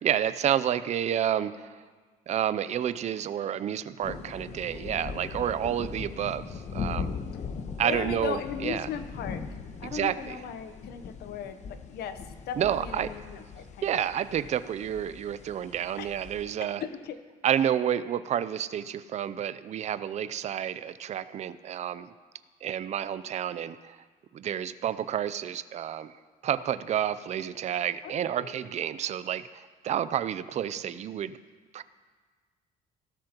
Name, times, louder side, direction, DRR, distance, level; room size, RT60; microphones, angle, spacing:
voice 1, 0.0-1.8 2.3-7.2 7.8-8.9 9.8-10.4 12.6-13.1 13.8-16.8 17.4-22.1 22.6-24.0 24.3-26.2 26.4-31.3 31.7-31.8, right 10 dB, 40° right, 14 dB, 0.5 m, -30 dB
sound 1, 4.0-16.4, left 5 dB, 45° left, 1.0 m, -39 dB
voice 2, 7.8-9.4 9.8-12.2 12.5-14.1 16.0-16.1 16.6-17.2 28.0-28.6, left 8 dB, 70° left, 10 dB, 0.9 m, -37 dB
17.0 x 13.0 x 3.0 m, 1.5 s
cardioid pair, 110°, 17 cm